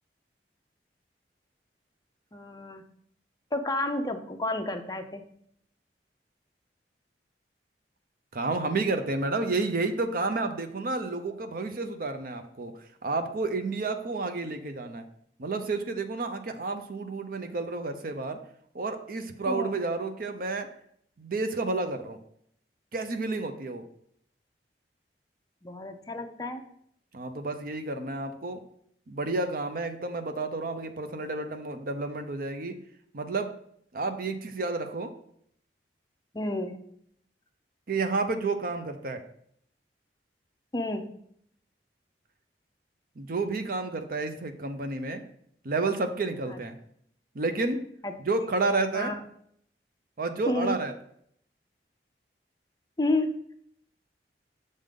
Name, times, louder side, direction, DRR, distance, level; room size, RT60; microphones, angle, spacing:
voice 1, 2.3-2.8 3.5-5.2 19.5-19.7 25.6-26.6 36.3-36.8 40.7-41.1 46.5-46.6 48.0-48.1 48.9-49.2 50.5-50.8 53.0-53.4, left 1 dB, 20° left, 5 dB, 0.6 m, -30 dB
voice 2, 8.3-12.7 13.0-15.0 15.4-18.4 18.7-20.7 21.2-22.2 22.9-23.8 27.1-28.6 29.1-32.7 33.1-33.5 33.9-35.1 37.9-39.2 43.2-45.2 45.6-46.8 47.3-47.9 48.2-49.1 50.2-50.9, right 3 dB, 55° right, 8 dB, 0.6 m, -30 dB
6.5 x 3.7 x 5.2 m, 0.68 s
head